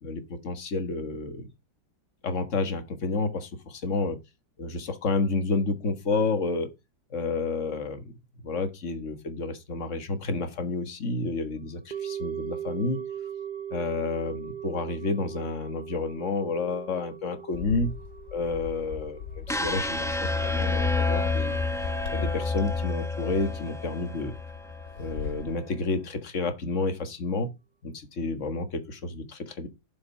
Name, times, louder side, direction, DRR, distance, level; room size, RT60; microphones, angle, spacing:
voice 1, 0.0-1.4 2.2-4.2 4.6-6.7 7.1-8.1 8.4-13.0 13.7-17.9 18.3-21.5 22.1-24.3 25.0-27.5 27.8-29.7, left 3 dB, 40° left, 1.6 m, -30 dB
sound 1, 11.9-22.2 22.4-22.5, right 9 dB, 65° right, 0.4 m, -40 dB
Bird, 17.5-25.5, left 7 dB, 65° left, 2.7 m, -40 dB
sound 2, 19.5-25.6, left 3 dB, 5° left, 0.4 m, -29 dB
7.7 x 5.7 x 5.5 m
omnidirectional pair, 2.0 m